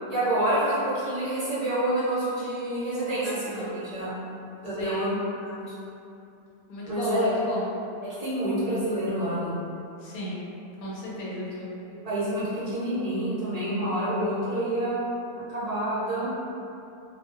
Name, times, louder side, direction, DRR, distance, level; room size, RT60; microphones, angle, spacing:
voice 1, 0.1-3.3 3.5-4.2 4.6-5.1 5.4-5.6 6.9-7.3 8.2-9.5 12.0-15.1 15.5-16.3, right 1 dB, 50° right, -12 dB, 0.4 m, -27 dB
voice 2, 3.2-3.8 4.7-5.2 6.7-7.7 10.0-10.4 10.8-11.7, left 1 dB, 85° left, -7 dB, 1.1 m, -34 dB
2.4 x 2.1 x 2.4 m, 2.7 s
omnidirectional pair, 1.5 m